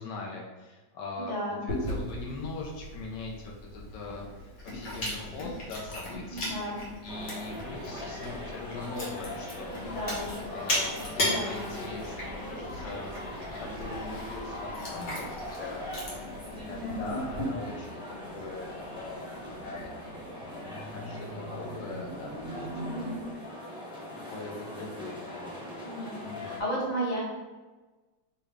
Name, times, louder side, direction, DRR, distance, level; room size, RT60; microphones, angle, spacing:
voice 1, 0.0-1.3 1.7-6.6 7.0-10.0 10.5-13.1 13.6-15.9 16.5-19.9 20.7-23.0 24.3-25.6 26.2-26.6, left 3 dB, 80° left, -1 dB, 1.4 m, -41 dB
voice 2, 1.2-1.6 6.3-6.8 9.8-10.3 11.2-11.7 16.7-17.1 22.8-23.2 25.8-27.2, right 1 dB, 25° left, -6 dB, 1.2 m, -34 dB
Chewing mastication, 1.7-17.4, left 1 dB, 55° left, 1.6 m, -37 dB
sound 1, 7.1-26.6, left 1 dB, 5° right, 0.7 m, -41 dB
sound 2, 17.3-23.3, right 1 dB, 60° right, 1.0 m, -43 dB
4.4 x 3.2 x 3.4 m, 1.2 s
omnidirectional pair, 1.9 m